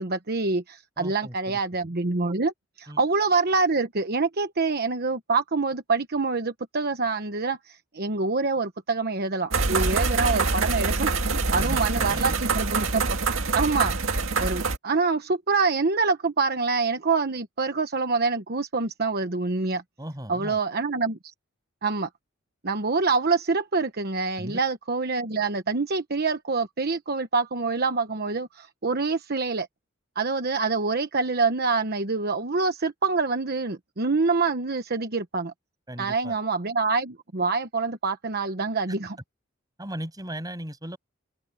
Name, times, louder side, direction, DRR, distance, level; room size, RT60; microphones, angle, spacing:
voice 1, 0.0-13.0 13.5-14.0 14.4-19.8 20.3-21.2 21.8-22.1 22.6-29.7 30.1-35.5 36.0-39.2, right 4 dB, 50° right, 1.1 m, -26 dB
voice 2, 1.0-1.6 2.9-3.0 11.5-12.4 20.0-20.6 24.4-24.6 35.9-36.4 39.8-41.0, right 1 dB, 20° right, 7.4 m, -37 dB
sound 1, 9.5-14.8, right 4 dB, 75° right, 2.1 m, -25 dB
head